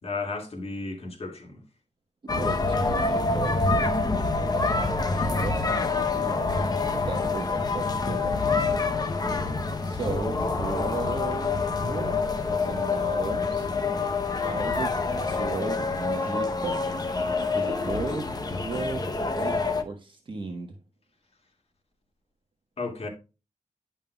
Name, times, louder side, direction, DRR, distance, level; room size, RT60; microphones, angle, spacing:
voice 1, 0.0-1.6 3.8-3.9 22.8-23.1, left 3 dB, 50° left, 2.2 m, -34 dB
voice 2, 2.2-3.9 4.4-6.5 6.9-8.4 9.8-13.7 14.3-16.8 17.5-19.5 19.8-20.8, right 4 dB, 40° right, 1.1 m, -36 dB
sound 1, 2.3-19.8, left 3 dB, 30° left, 0.8 m, -26 dB
10.5 x 5.5 x 2.3 m
wide cardioid pair, 140°, 13 cm